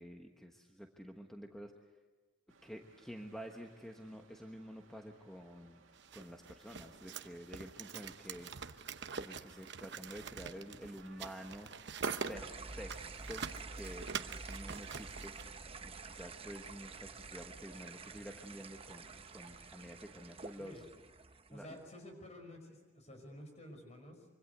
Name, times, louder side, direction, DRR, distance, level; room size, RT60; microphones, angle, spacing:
voice 1, 0.0-1.7 2.6-5.8 6.1-8.5 9.1-11.7 12.3-12.9 13.3-15.3 15.8-20.8 21.5-21.7, equal, ahead, 2 dB, 1.3 m, -49 dB
sound 1, 2.5-20.8, right 4 dB, 85° right, 2.2 m, -64 dB
sound 2, 6.0-15.5, right 5 dB, 60° right, 0.9 m, -44 dB
sound 3, 12.4-21.8, right 4 dB, 30° right, 0.9 m, -49 dB
voice 2, 21.5-24.3, left 1 dB, 35° left, 5 dB, 5.3 m, -51 dB
25.5 x 25.0 x 8.1 m, 1.3 s
head